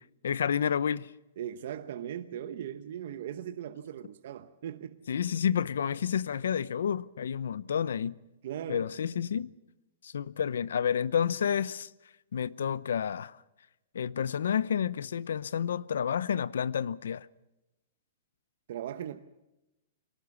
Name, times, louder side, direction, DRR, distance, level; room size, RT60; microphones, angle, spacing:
voice 1, 0.2-1.1 5.1-8.2 8.7-9.5 10.0-11.9 12.3-13.4 13.9-17.3, left 8 dB, 90° left, 0.7 m, -30 dB
voice 2, 1.4-5.0 8.4-8.9 18.7-19.2, right 10 dB, 50° right, 1.0 m, -38 dB
23.5 x 18.5 x 7.2 m
hypercardioid pair, 175°, 0 cm